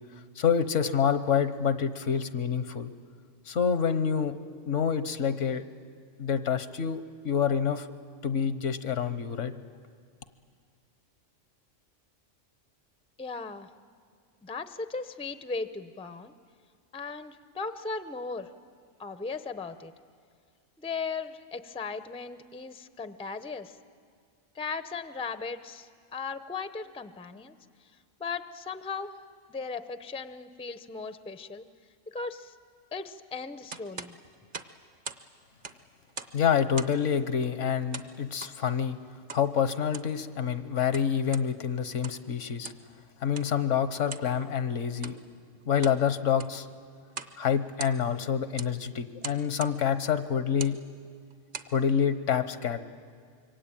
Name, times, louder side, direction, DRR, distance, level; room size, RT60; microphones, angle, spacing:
voice 1, 0.4-2.9 3.5-4.4 4.7-5.6 6.2-7.9 8.2-9.5 36.3-39.0 39.3-42.7 43.2-45.1 45.7-46.7 47.4-50.8 51.7-52.8, left 7 dB, 75° left, 11 dB, 1.3 m, -27 dB
voice 2, 13.2-13.7 14.4-16.3 16.9-18.5 19.0-19.9 20.8-23.8 24.5-27.5 28.2-29.1 29.5-31.7 32.1-32.5 32.9-34.2, left 4 dB, 5° left, 11 dB, 0.5 m, -37 dB
sound 1, 33.7-35.3 35.5-36.4 36.7-37.1 37.9-38.6 39.3-39.5 39.8-40.2 40.7-41.5 41.9-42.3 42.6-42.9 43.3-43.5 44.1-44.3 44.9-45.2 45.6-46.0 46.3-46.6 47.1-47.4 47.6-48.2 48.6-48.8 49.2-49.8 50.5-50.8 51.3-51.7, right 4 dB, 45° right, 1.0 m, -41 dB
26.0 x 23.5 x 8.9 m, 2.1 s
omnidirectional pair, 1.3 m